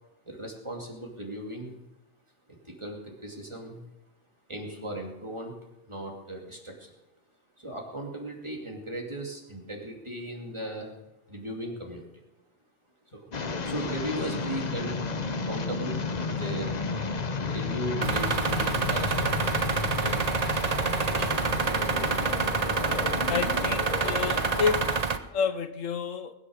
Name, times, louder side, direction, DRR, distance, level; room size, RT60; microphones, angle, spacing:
voice 1, 0.3-1.8 2.5-3.8 4.5-5.6 5.9-6.9 7.6-11.0 11.3-12.0 13.1-13.3 13.6-15.0 15.3-16.8 17.5-19.4 19.7-20.4 21.2-21.4, right 1 dB, 20° right, 0 dB, 2.6 m, -37 dB
sound 1, 13.3-25.0, left 4 dB, 35° left, 0.9 m, -32 dB
sound 2, 18.0-25.2, right 5 dB, 40° right, 0.7 m, -27 dB
voice 2, 23.3-24.9 25.3-26.3, left 6 dB, 70° left, 10 dB, 1.3 m, -29 dB
20.5 x 9.8 x 6.5 m, 0.97 s
omnidirectional pair, 1.4 m